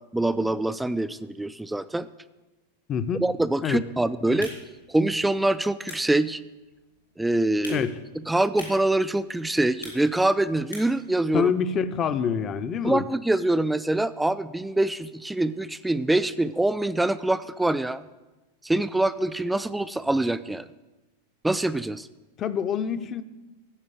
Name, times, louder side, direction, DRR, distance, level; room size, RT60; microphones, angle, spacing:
voice 1, 0.1-2.1 3.2-4.5 4.9-6.4 7.2-7.9 8.3-11.5 12.8-18.0 18.6-20.7 21.4-22.1, right 2 dB, 5° right, 13 dB, 0.3 m, -24 dB
voice 2, 2.9-3.2 3.6-3.8 4.2-4.5 7.7-7.9 11.3-13.1 22.4-23.2, left 7 dB, 30° left, 12 dB, 0.6 m, -26 dB
sound 1, 4.2-11.1, left 2 dB, 80° left, 3.7 m, -46 dB
14.5 x 5.3 x 8.1 m, 1.1 s
figure-of-eight pair, 90°, 0 cm